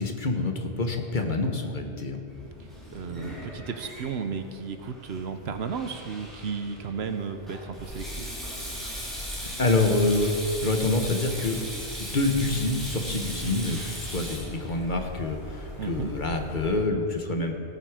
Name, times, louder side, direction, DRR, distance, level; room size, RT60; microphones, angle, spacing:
voice 1, 0.0-2.2 9.6-11.6 12.0-17.5, left 2 dB, 45° left, 4 dB, 1.2 m, -26 dB
Sink (filling or washing), 2.3-16.0, equal, ahead, 3.7 m, -39 dB
voice 2, 2.9-8.3 15.8-16.1, right 5 dB, 70° right, 8 dB, 1.0 m, -34 dB
sound 1, 7.8-16.7, equal, 80° left, 3.0 m, -41 dB
17.5 x 8.1 x 4.8 m, 2.4 s
omnidirectional pair, 1.1 m